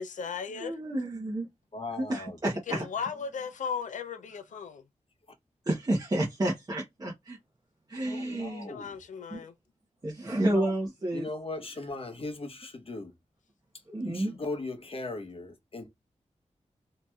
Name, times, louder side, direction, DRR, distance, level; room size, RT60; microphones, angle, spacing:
voice 1, 0.0-0.8 2.7-4.8 8.7-9.5, left 6 dB, 85° left, 0.4 m, -36 dB
voice 2, 0.6-1.5 2.1-2.8 5.7-7.4 7.9-8.7 9.3-9.4 10.0-11.3 13.9-14.3, right 1 dB, 30° right, 0.8 m, -30 dB
voice 3, 1.7-2.8 8.1-9.0 10.4-10.7 11.1-13.1 14.0-15.9, left 2 dB, 50° left, 0.8 m, -38 dB
2.9 x 2.8 x 2.3 m
wide cardioid pair, 75°, 13 cm